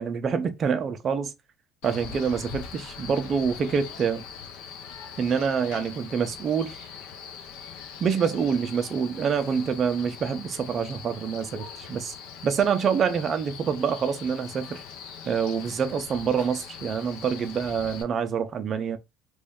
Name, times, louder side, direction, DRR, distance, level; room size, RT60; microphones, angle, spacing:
voice 1, 0.0-1.3 1.8-4.2 5.2-6.8 8.0-12.1 12.4-14.8 15.3-19.0, right 6 dB, 35° right, 0.6 m, -26 dB
Male speech man speaking, 1.8-18.0, left 7 dB, 85° left, 0.7 m, -42 dB
3.1 x 2.7 x 3.5 m
cardioid pair, 150°, 0 cm